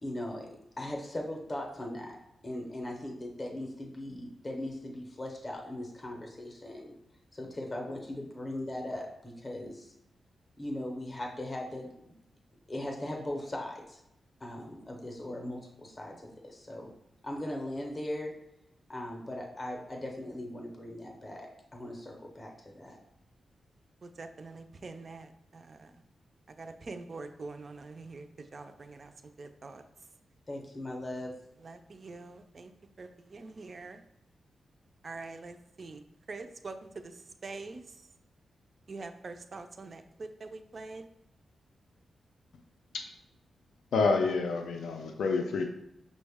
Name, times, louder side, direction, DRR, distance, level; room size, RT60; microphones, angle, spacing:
voice 1, 0.0-2.2 2.4-6.9 7.3-9.9 10.6-12.1 12.7-14.0 14.4-16.9 17.2-18.3 18.9-23.0 30.5-31.4, left 1 dB, 20° left, 1 dB, 0.6 m, -39 dB
voice 2, 24.2-25.9 26.6-28.3 28.5-29.1 29.4-29.8 31.6-32.7 33.0-34.0 35.0-36.0 36.3-36.7 37.0-37.1 37.4-37.8 38.9-41.0, right 3 dB, 35° right, 8 dB, 0.3 m, -44 dB
voice 3, 43.9-45.7, left 4 dB, 85° left, 4 dB, 0.4 m, -28 dB
6.1 x 2.1 x 3.4 m, 0.82 s
wide cardioid pair, 170°, 0 cm